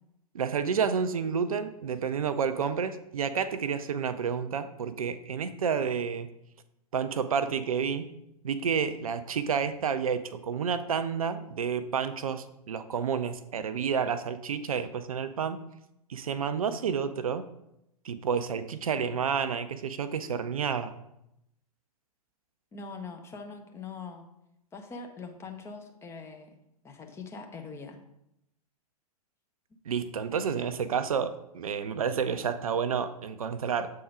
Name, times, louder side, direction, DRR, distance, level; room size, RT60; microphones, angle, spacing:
voice 1, 0.3-6.3 6.9-8.1 8.4-15.6 16.1-17.4 18.0-20.9 29.9-33.9, right 6 dB, 65° right, 11 dB, 0.5 m, -30 dB
voice 2, 22.7-24.3 24.7-26.6 26.8-28.0, left 4 dB, 15° left, 4 dB, 0.7 m, -42 dB
7.6 x 3.8 x 4.8 m, 0.83 s
figure-of-eight pair, 105°, 20 cm